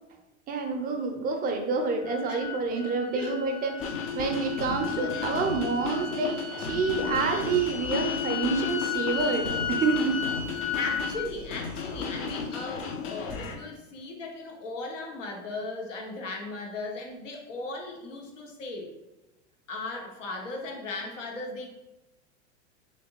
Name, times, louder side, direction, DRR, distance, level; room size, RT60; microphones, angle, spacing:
voice 1, 0.5-10.2, right 4 dB, 25° right, 3 dB, 0.4 m, -28 dB
sound 1, 2.0-11.2, left 7 dB, 60° left, 1.1 m, -35 dB
sound 2, 3.8-13.6, left 5 dB, 35° left, 0.5 m, -34 dB
voice 2, 10.7-18.9 19.7-21.7, left 2 dB, 85° left, 2 dB, 0.9 m, -37 dB
3.2 x 2.8 x 2.9 m, 1.0 s
hypercardioid pair, 100°, 36 cm